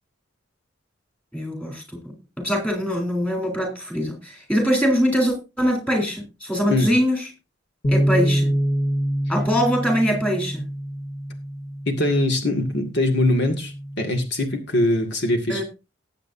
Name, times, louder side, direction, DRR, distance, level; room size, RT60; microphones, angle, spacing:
voice 1, 1.3-7.2 7.9-8.5 9.3-10.6 15.5-15.6, equal, 5° left, 3 dB, 3.9 m, -23 dB
sound 1, 7.8-14.1, equal, 40° left, 1.7 m, -26 dB
voice 2, 11.9-15.6, left 1 dB, 60° left, 4 dB, 2.0 m, -22 dB
19.5 x 8.0 x 2.7 m, 0.28 s
head